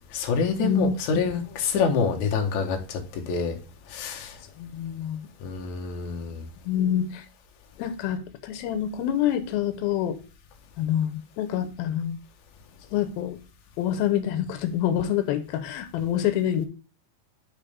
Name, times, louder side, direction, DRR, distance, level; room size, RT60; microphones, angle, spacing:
voice 1, 0.1-3.6 3.9-4.4 5.4-6.4, left 5 dB, 65° left, 2.4 m, -27 dB
voice 2, 0.6-1.0 4.6-5.3 6.7-7.3 7.8-10.2 10.8-12.2 12.9-13.4 13.8-16.7, left 10 dB, 90° left, 2.6 m, -26 dB
8.9 x 4.3 x 3.3 m
omnidirectional pair, 4.2 m